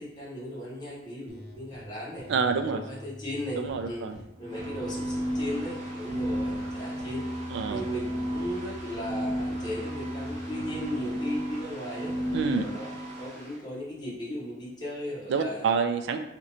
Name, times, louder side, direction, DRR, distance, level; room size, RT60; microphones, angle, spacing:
voice 1, 0.0-2.2 2.7-4.1 4.4-7.2 7.7-12.1 12.5-12.9 13.2-15.8, left 1 dB, 20° left, -7 dB, 1.0 m, -36 dB
sound 1, 1.3-1.8 2.2-4.2 4.6-6.7 7.0-9.0 9.4-10.8, equal, 60° left, 0.6 m, -46 dB
voice 2, 2.3-2.8 3.6-4.2 7.5-7.8 12.3-12.6 15.3-16.2, right 5 dB, 70° right, 7 dB, 0.3 m, -27 dB
sound 2, 4.4-13.5, equal, 40° right, 0.9 m, -33 dB
2.9 x 2.5 x 4.1 m, 0.90 s
head